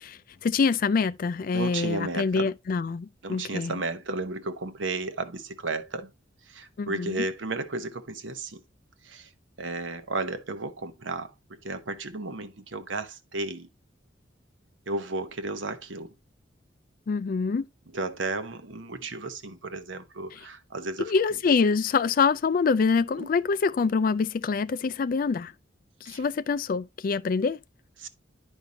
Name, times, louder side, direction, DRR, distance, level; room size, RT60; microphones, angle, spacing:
voice 1, 0.0-3.8 6.8-7.3 17.1-17.7 20.3-20.4 21.0-25.5 26.0-27.6, left 5 dB, 45° left, 0.3 m, -25 dB
voice 2, 1.5-2.5 3.2-6.1 6.5-8.6 9.0-9.3 9.6-11.3 11.6-13.7 14.9-16.1 17.9-21.1 23.2-23.3 26.1-26.2 28.0-28.1, right 3 dB, 80° right, 0.9 m, -33 dB
10.0 x 5.4 x 2.8 m
head